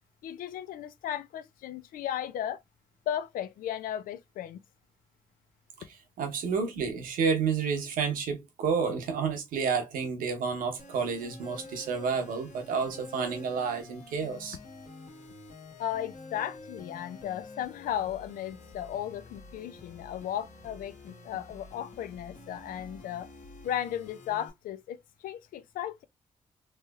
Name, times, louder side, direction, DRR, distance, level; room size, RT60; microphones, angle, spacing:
voice 1, 0.2-2.6 3.1-4.6 15.8-23.3 23.6-26.0, left 10 dB, 85° left, 0.4 m, -35 dB
voice 2, 5.9-14.6, right 5 dB, 85° right, 0.8 m, -30 dB
sound 1, 10.8-24.5, left 3 dB, 65° left, 1.2 m, -48 dB
3.1 x 3.0 x 2.3 m
supercardioid pair, 55°, 14 cm